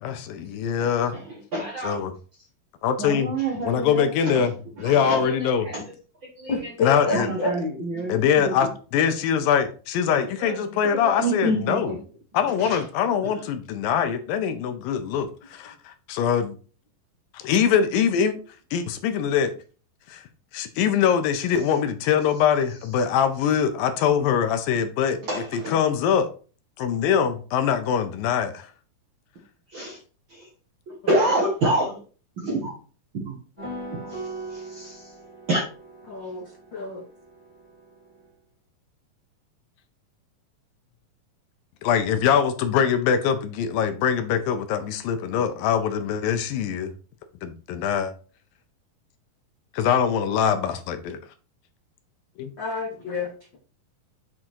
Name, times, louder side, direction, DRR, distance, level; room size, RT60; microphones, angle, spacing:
voice 1, 0.0-1.2 1.8-2.1 2.8-3.3 3.7-4.5 4.8-5.7 6.8-7.3 8.1-8.7 8.9-11.9 12.3-16.6 17.3-18.4 18.7-19.5 20.1-20.2 20.5-25.2 25.7-26.3 26.8-28.7 41.8-46.9 47.4-48.1 49.7-51.2 52.4-52.5, left 8 dB, 80° left, 2.5 m, -23 dB
voice 2, 0.8-2.0 3.0-4.5 4.8-5.9 6.2-6.7 7.1-8.6 10.1-12.0 12.5-12.8 13.3-13.4 25.2-25.8 29.7-30.0 30.3-30.5 30.9-32.0 32.4-32.8 33.1-33.4 33.9-35.1 35.5-35.6, right 1 dB, 50° right, 1.5 m, -28 dB
voice 3, 6.5-7.5 36.1-37.1 52.6-53.6, left 3 dB, 60° left, 1.2 m, -29 dB
sound 1, 33.6-38.3, right 2 dB, 10° right, 1.6 m, -40 dB
7.9 x 3.7 x 4.5 m
omnidirectional pair, 4.1 m